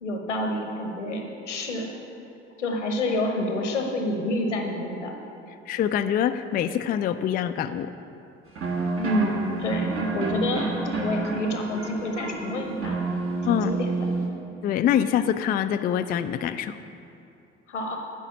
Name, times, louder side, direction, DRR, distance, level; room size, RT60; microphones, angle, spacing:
voice 1, 0.0-1.9 2.6-5.1 9.0-13.0 13.5-14.1 17.7-18.0, left 1 dB, 80° left, 3 dB, 0.9 m, -28 dB
voice 2, 5.7-7.9 13.5-13.7 14.6-16.8, left 9 dB, 25° left, 9 dB, 0.3 m, -25 dB
sound 1, 8.5-14.3, right 3 dB, 40° right, 1.4 m, -30 dB
9.7 x 5.0 x 6.9 m, 2.6 s
figure-of-eight pair, 50°, 35 cm